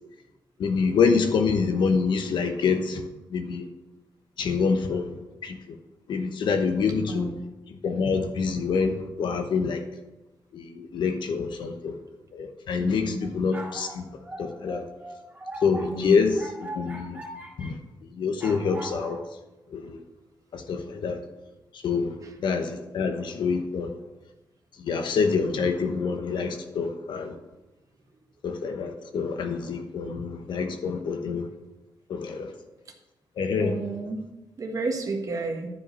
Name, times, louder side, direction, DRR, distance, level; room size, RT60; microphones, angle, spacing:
voice 1, 0.6-3.7 4.4-5.1 5.4-5.6 6.1-7.3 7.7-9.8 10.5-12.0 12.3-14.0 14.4-14.8 15.6-17.2 17.6-17.8 18.2-19.2 19.7-20.0 20.5-21.2 21.8-22.1 22.4-23.9 24.8-27.3 28.4-31.5 32.1-32.5 33.4-33.8, left 5 dB, 80° left, 7 dB, 1.0 m, -26 dB
voice 2, 7.1-7.5 12.8-13.3 15.9-16.3 22.2-22.3 33.6-34.2 34.6-35.7, right 2 dB, 45° right, 3 dB, 1.5 m, -31 dB
sound 1, 13.2-17.7 18.4-19.2, right 1 dB, 20° right, 1.9 m, -40 dB
10.5 x 4.9 x 5.5 m, 1.1 s
cardioid pair, 100°, 8 cm